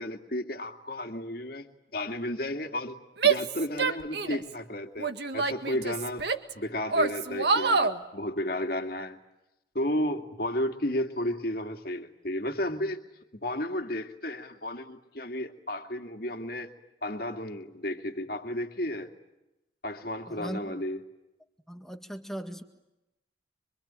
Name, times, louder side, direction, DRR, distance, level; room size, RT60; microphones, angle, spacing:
voice 1, 0.0-3.0 3.2-6.3 6.5-9.2 9.7-13.0 13.3-16.7 17.0-19.1 19.8-21.0, left 1 dB, 50° left, 6 dB, 2.4 m, -33 dB
Female speech woman speaking / Yell, 3.2-4.5 5.0-6.5 6.9-8.0, right 4 dB, 60° right, 1.8 m, -26 dB
voice 2, 20.3-20.8 21.7-22.6, equal, ahead, 6 dB, 1.8 m, -38 dB
25.5 x 25.0 x 9.0 m, 0.92 s
head